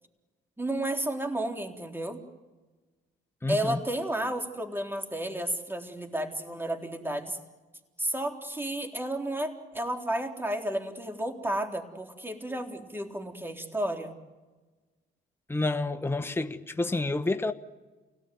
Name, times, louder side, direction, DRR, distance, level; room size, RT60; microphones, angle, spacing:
voice 1, 0.6-2.2 3.5-7.4 8.0-14.1, right 1 dB, 10° right, 3.9 m, -32 dB
voice 2, 3.4-3.8 15.5-17.5, left 2 dB, 10° left, 1.3 m, -29 dB
29.0 x 18.0 x 9.5 m
cardioid pair, 90°, 20 cm